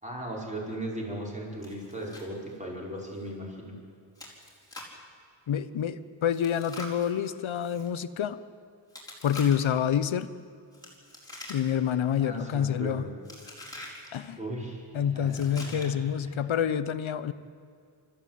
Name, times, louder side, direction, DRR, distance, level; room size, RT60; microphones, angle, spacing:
voice 1, 0.0-3.8 12.2-13.1 14.4-15.9, right 1 dB, 15° right, -3 dB, 5.5 m, -37 dB
Chewing mastication, 1.6-2.3 2.5-2.6 3.1-3.3 4.1-5.0 6.3-7.9 8.9-9.8 10.7-11.9 12.2-12.6 13.2-14.1 15.2-16.1, left 1 dB, 10° left, 4.5 m, -45 dB
voice 2, 5.5-8.4 9.2-10.3 11.5-13.1 14.1-14.4 14.9-17.3, left 9 dB, 75° left, 14 dB, 1.0 m, -27 dB
29.0 x 14.0 x 9.2 m, 2.3 s
wide cardioid pair, 160°, 47 cm